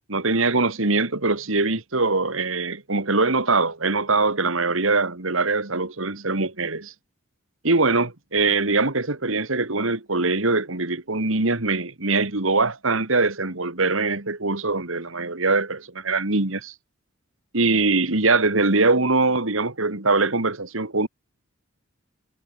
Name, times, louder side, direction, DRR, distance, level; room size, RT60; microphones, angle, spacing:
voice 1, 0.1-6.9 7.6-16.7 17.5-21.1, right 3 dB, 70° right, 2.5 m, -22 dB
head